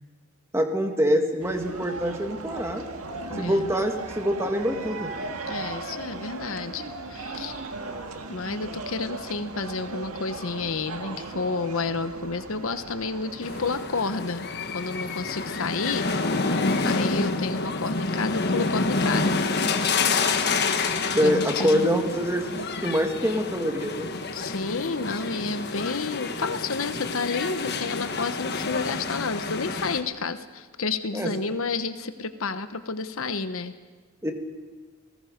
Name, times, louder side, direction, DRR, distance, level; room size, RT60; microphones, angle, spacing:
voice 1, 0.5-2.9 3.4-5.1 21.1-24.1 31.1-31.3 34.2-34.3, equal, 10° right, 4 dB, 1.7 m, -25 dB
sound 1, 1.4-13.8, right 3 dB, 80° right, 1.7 m, -37 dB
voice 2, 3.3-3.7 5.4-6.8 7.1-7.6 8.3-14.5 14.7-19.4 21.2-21.9 24.3-33.8, left 4 dB, 65° left, 10 dB, 1.0 m, -30 dB
sound 2, 13.4-30.0, left 3 dB, 45° left, 1.3 m, -28 dB
28.5 x 19.0 x 5.1 m, 1.4 s
head